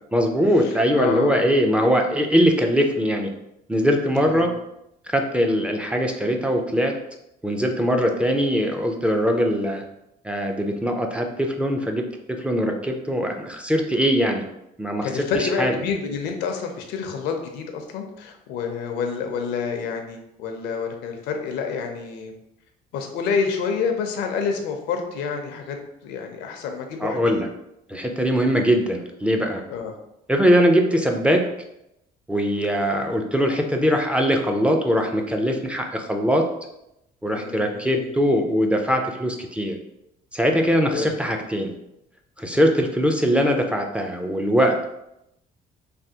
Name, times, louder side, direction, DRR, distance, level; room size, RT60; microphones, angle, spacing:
voice 1, 0.1-3.3 3.7-4.5 5.1-6.9 7.4-9.8 10.2-14.4 14.8-15.7 27.0-27.5 27.9-29.6 30.3-31.5 32.3-36.5 37.2-39.8 40.3-41.7 42.4-44.9, equal, 5° right, 2 dB, 0.3 m, -21 dB
voice 2, 0.6-1.4 4.3-4.5 15.0-22.3 22.9-25.8 26.0-27.4 29.7-29.9 37.3-38.1 40.9-41.1 42.5-42.6, left 5 dB, 90° left, 4 dB, 0.5 m, -28 dB
3.3 x 2.3 x 2.7 m, 0.84 s
cardioid pair, 110°, 17 cm